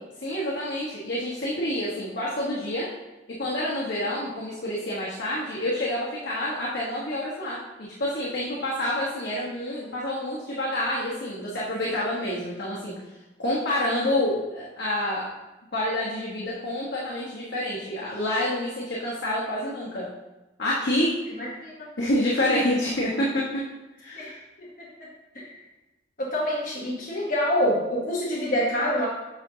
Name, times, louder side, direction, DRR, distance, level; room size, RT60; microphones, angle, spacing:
voice 1, 0.2-2.9 3.4-12.9 13.4-15.3 15.7-20.1 20.6-21.1 22.0-23.6 24.0-24.4, left 1 dB, 70° left, -7 dB, 1.3 m, -28 dB
voice 2, 21.4-21.9 24.1-24.3 24.6-24.9 25.3-25.5 26.2-29.1, equal, 45° left, -6 dB, 1.1 m, -26 dB
8.0 x 5.2 x 2.8 m, 1.1 s
head